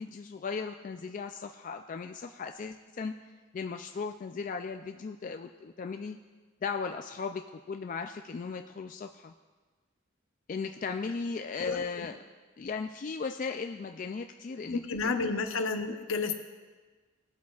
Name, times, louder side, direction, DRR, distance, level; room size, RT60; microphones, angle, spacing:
voice 1, 0.0-3.1 3.5-6.2 6.6-9.3 10.5-12.2 12.6-15.1, left 5 dB, 40° left, 5 dB, 0.3 m, -37 dB
voice 2, 11.6-12.1 14.7-16.3, left 4 dB, 75° left, 6 dB, 0.8 m, -31 dB
18.0 x 8.3 x 2.4 m, 1.4 s
head